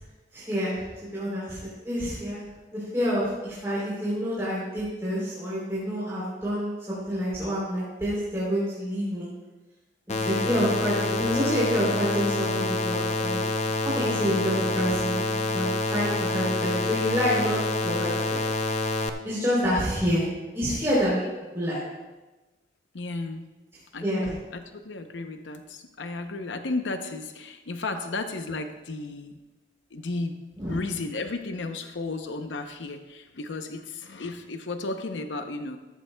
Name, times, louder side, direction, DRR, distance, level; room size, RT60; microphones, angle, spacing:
voice 1, 0.3-0.7 1.1-1.6 1.8-2.4 2.7-9.3 10.2-13.4 13.8-17.6 17.8-18.4 19.2-21.2 21.5-21.8 24.0-24.2 30.6-30.7, equal, 15° right, -9 dB, 3.2 m, -27 dB
sound 1, 10.1-19.1, left 2 dB, 40° left, 0.6 m, -27 dB
voice 2, 14.1-14.5 22.9-23.5 23.9-29.4 29.9-30.4 30.7-35.8, left 3 dB, 90° left, 7 dB, 0.7 m, -34 dB
13.5 x 12.5 x 2.2 m, 1.2 s
head